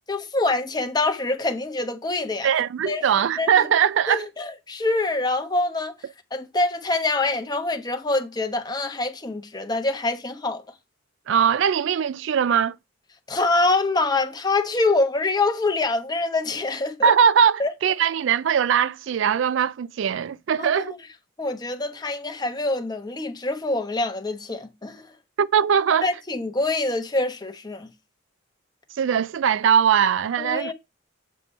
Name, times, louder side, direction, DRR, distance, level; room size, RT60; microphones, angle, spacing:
voice 1, 0.1-2.5 2.9-3.5 4.1-5.9 6.3-10.6 13.3-17.1 17.6-17.7 20.6-21.0 21.4-25.1 26.0-27.9 30.4-30.7, left 2 dB, 20° left, 0.9 m, -25 dB
voice 2, 2.4-4.3 11.3-12.8 17.0-20.9 25.4-26.1 29.0-30.7, right 7 dB, 65° right, 0.3 m, -21 dB
7.5 x 5.2 x 4.2 m
head